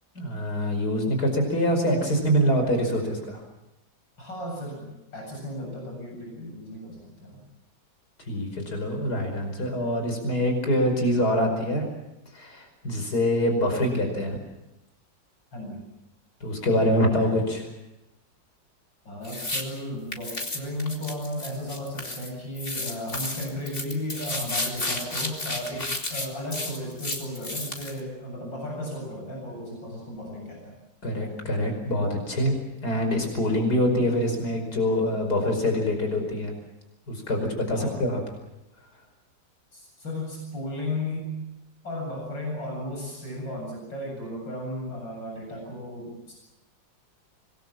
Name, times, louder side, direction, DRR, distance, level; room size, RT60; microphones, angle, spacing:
voice 1, 0.1-3.4 8.2-11.9 12.3-14.4 16.4-17.7 31.0-32.5 32.8-36.5 37.1-38.2, equal, 55° left, 4 dB, 5.8 m, -25 dB
voice 2, 4.2-7.4 15.5-15.8 19.0-30.8 37.7-38.1 39.7-41.4 41.8-46.3, left 1 dB, 85° left, -1 dB, 8.6 m, -35 dB
sound 1, 19.2-19.6 20.1-22.3 22.6-28.0, left 2 dB, 30° left, 2.9 m, -32 dB
25.5 x 20.5 x 7.5 m, 0.94 s
omnidirectional pair, 2.0 m